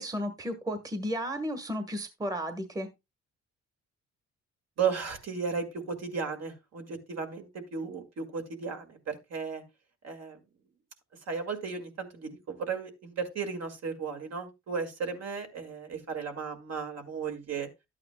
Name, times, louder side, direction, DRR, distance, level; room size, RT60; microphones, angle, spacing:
voice 1, 0.0-2.9, equal, 10° right, 1.2 m, -33 dB
voice 2, 4.8-9.6 10.0-10.4 11.3-17.7, right 5 dB, 55° right, 2.0 m, -35 dB
12.0 x 8.7 x 2.2 m
cardioid pair, 90°, 30 cm